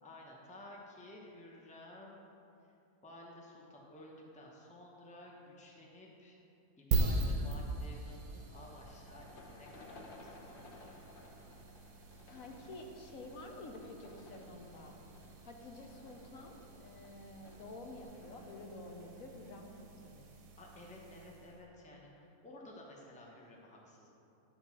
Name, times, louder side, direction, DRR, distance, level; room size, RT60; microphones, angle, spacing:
voice 1, 0.0-2.3 2.6-2.7 3.0-6.4 6.8-11.0 20.6-24.1, left 1 dB, 5° left, -2 dB, 0.7 m, -54 dB
sound 1, 6.9-21.6, right 3 dB, 65° right, 1.2 m, -41 dB
sound 2, 7.7-20.0, left 2 dB, 50° left, 0.7 m, -59 dB
voice 2, 12.3-15.0 15.4-20.3, left 2 dB, 65° left, 2 dB, 1.1 m, -50 dB
10.5 x 3.9 x 6.0 m, 2.7 s
omnidirectional pair, 1.7 m